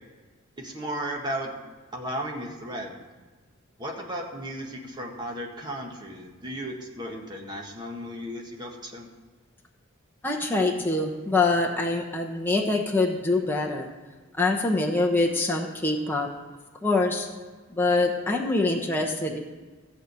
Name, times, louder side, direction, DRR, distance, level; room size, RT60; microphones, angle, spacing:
voice 1, 0.6-1.6 1.9-3.0 3.8-9.1, equal, 20° right, 0 dB, 1.7 m, -35 dB
voice 2, 10.2-13.9 14.4-16.3 16.8-17.3 17.7-19.4, left 2 dB, 10° left, 0 dB, 1.0 m, -24 dB
14.5 x 5.0 x 8.2 m, 1.4 s
head